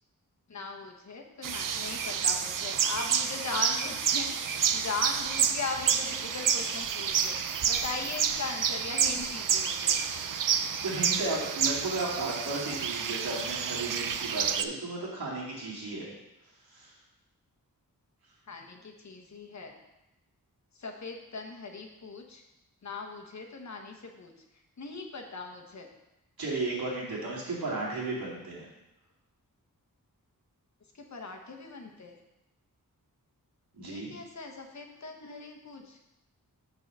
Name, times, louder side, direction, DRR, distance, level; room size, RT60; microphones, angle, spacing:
voice 1, 0.5-10.0 18.5-19.7 20.7-22.4 22.8-24.3 24.8-25.9 30.9-32.2 33.8-36.0, left 4 dB, 50° left, 3 dB, 1.1 m, -39 dB
sound 1, 1.4-14.6, right 7 dB, 65° right, 0.5 m, -29 dB
voice 2, 10.8-16.1 16.7-16.9 26.4-28.7 33.7-34.1, right 2 dB, 90° right, -6 dB, 2.8 m, -34 dB
6.5 x 4.8 x 6.9 m, 0.92 s
wide cardioid pair, 135°, 35 cm